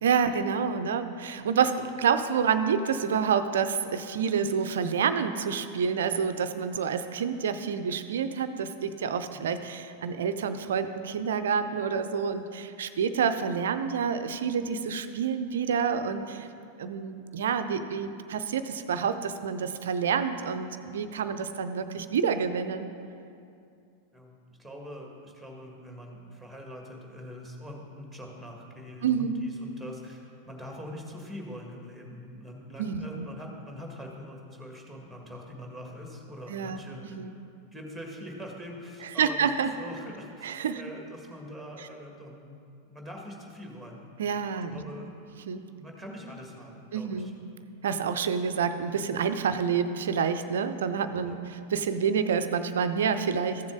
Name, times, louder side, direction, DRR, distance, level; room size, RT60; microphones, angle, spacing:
voice 1, 0.0-16.5 16.8-22.9 29.0-29.4 32.8-33.3 36.5-36.8 37.0-37.4 39.2-39.7 40.4-40.8 44.2-44.8 45.3-45.6 46.9-47.3 47.8-53.6, right 6 dB, 60° right, 10 dB, 0.5 m, -28 dB
voice 2, 24.1-37.3 37.7-39.4 39.8-42.6 42.8-44.1 44.7-45.3 45.7-47.3 51.2-51.4, equal, ahead, 0 dB, 1.7 m, -43 dB
14.5 x 7.0 x 3.8 m, 2.5 s
figure-of-eight pair, 90°, 0 cm